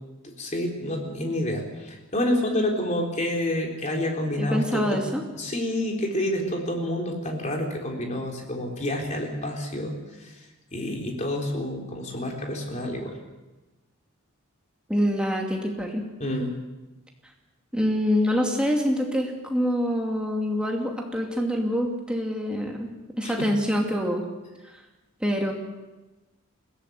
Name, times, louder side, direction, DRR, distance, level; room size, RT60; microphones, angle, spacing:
voice 1, 0.2-5.0 5.3-13.2 16.2-16.6 23.2-23.5, left 1 dB, 30° left, 1 dB, 3.8 m, -28 dB
voice 2, 4.4-5.2 14.9-16.1 17.7-22.9 23.2-24.2 25.2-25.5, equal, 5° right, 1 dB, 2.5 m, -25 dB
21.5 x 17.0 x 8.0 m, 1.1 s
head